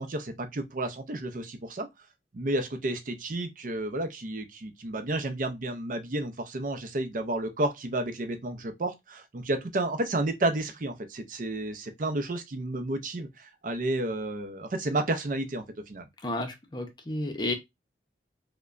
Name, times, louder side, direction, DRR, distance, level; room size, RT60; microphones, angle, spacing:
voice 1, 0.0-1.9 2.3-16.1, right 2 dB, 45° right, 0.6 m, -31 dB
voice 2, 16.2-17.5, left 2 dB, 25° left, 0.6 m, -32 dB
4.8 x 2.2 x 2.4 m
head